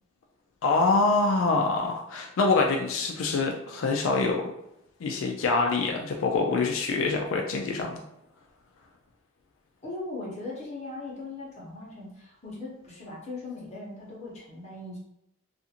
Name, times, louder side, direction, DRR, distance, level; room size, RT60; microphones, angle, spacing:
voice 1, 0.6-4.4 5.0-8.0, left 3 dB, 80° left, 1 dB, 0.3 m, -25 dB
voice 2, 9.8-15.0, left 2 dB, 35° left, -5 dB, 0.9 m, -39 dB
2.5 x 2.5 x 2.8 m, 0.83 s
head